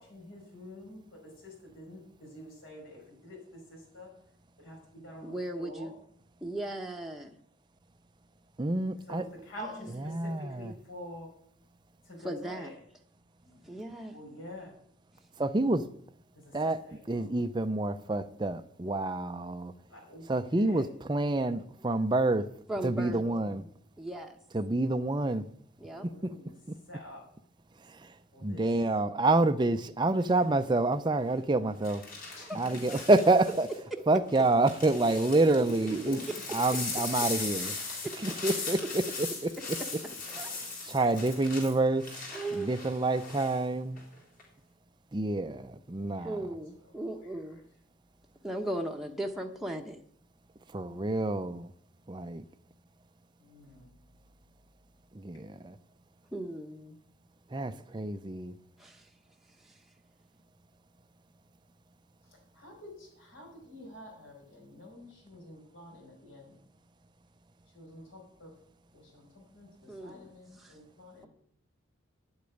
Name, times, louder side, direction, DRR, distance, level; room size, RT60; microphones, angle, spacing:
voice 1, 0.0-4.1 4.6-5.9 9.1-11.3 12.0-12.8 13.4-14.7 16.3-16.5 16.8-17.4 19.9-20.2 20.5-20.8 22.9-23.7 25.8-26.5 26.9-27.2 28.3-28.6 32.4-33.6 34.2-34.6 35.9-36.2 39.6-40.2 46.1-47.6 53.4-53.9 62.5-66.6 67.7-68.5 68.9-69.7 70.0-71.3, equal, 70° left, 5.1 m, -48 dB
voice 2, 5.2-5.9 6.4-7.4 9.6-10.1 12.2-12.8 13.6-14.1 22.7-23.2 24.0-24.4 25.8-26.1 32.3-33.0 33.4-33.5 33.9-34.0 35.3-35.4 38.0-38.1 40.3-40.5 42.3-42.8 46.2-47.6 48.4-50.0 56.3-57.0 58.8-59.1 59.6-59.8 69.9-70.3 70.6-70.7, right 1 dB, ahead, 0.9 m, -37 dB
voice 3, 8.6-9.2 10.0-10.7 15.4-15.8 16.5-16.8 17.1-19.7 20.3-22.5 22.8-23.6 24.5-25.4 26.2-26.3 28.4-32.0 32.5-33.7 34.1-36.2 36.5-37.7 38.2-39.0 40.9-42.1 42.6-44.0 45.1-46.3 50.7-51.7 52.1-52.4 55.2-55.7 57.5-58.5, right 2 dB, 20° right, 0.5 m, -27 dB
sound 1, 30.2-30.5 31.8-33.8 34.3-43.6 44.0-44.4, left 4 dB, 45° left, 4.5 m, -39 dB
9.7 x 8.5 x 9.2 m
head